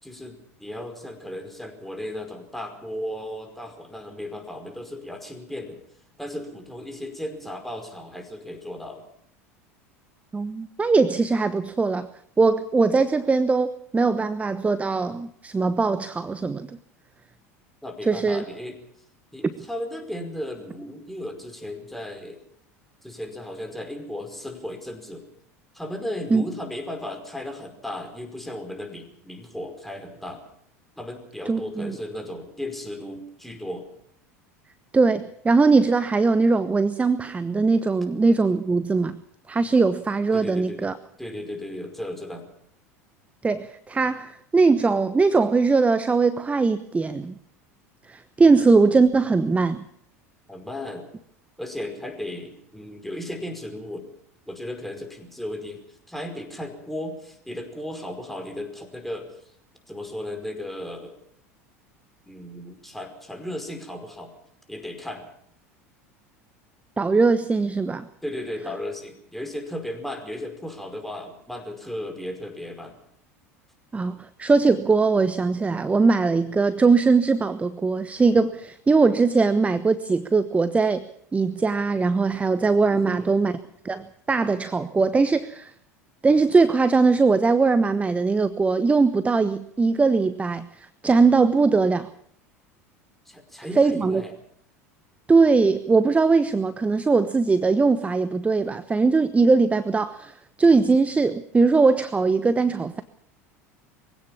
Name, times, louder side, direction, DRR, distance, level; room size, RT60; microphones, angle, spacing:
voice 1, 0.0-5.8 6.2-9.1 17.8-18.8 19.3-22.4 23.0-25.3 25.7-30.4 31.0-33.9 40.3-40.9 41.2-42.5 50.5-51.1 51.6-54.1 54.5-59.3 59.9-61.2 62.2-64.3 64.7-65.3 68.2-73.0 82.9-83.3 93.2-94.3, left 1 dB, ahead, 5 dB, 5.2 m, -35 dB
voice 2, 10.3-12.1 12.4-16.8 18.1-18.4 19.4-19.6 26.3-26.4 31.5-31.9 34.9-39.2 39.5-40.9 43.4-47.3 48.1-49.8 67.0-68.1 73.9-81.0 81.3-83.6 83.8-85.7 86.2-92.1 93.8-94.2 95.3-103.0, right 4 dB, 15° right, 14 dB, 1.1 m, -20 dB
23.0 x 17.0 x 7.3 m, 0.67 s
hypercardioid pair, 75°, 8 cm